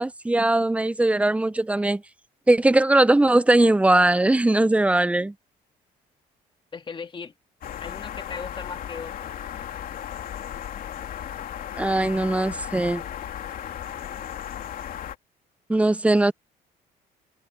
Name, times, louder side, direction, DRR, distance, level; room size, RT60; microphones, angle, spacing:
voice 1, 0.0-2.0 2.5-5.3 11.8-13.0 15.7-16.3, right 2 dB, 10° right, 0.6 m, -20 dB
voice 2, 6.7-7.3 7.8-9.3, left 5 dB, 30° left, 1.7 m, -37 dB
sound 1, 7.6-15.2, left 10 dB, 60° left, 2.9 m, -35 dB
cardioid pair, 110°, 17 cm